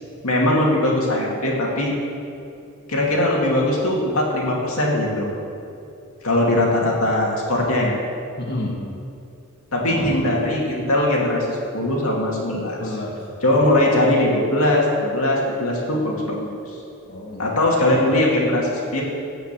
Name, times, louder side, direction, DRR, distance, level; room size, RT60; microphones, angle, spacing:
voice 1, 0.2-1.9 2.9-5.3 6.2-7.9 9.7-12.8 13.4-16.4 17.4-19.0, left 1 dB, 70° left, -2 dB, 2.5 m, -20 dB
voice 2, 8.4-8.8 9.9-10.3 12.8-13.2 13.5-13.7 17.1-17.5, left 1 dB, 50° left, -5 dB, 2.0 m, -30 dB
17.0 x 5.8 x 7.5 m, 2.6 s
head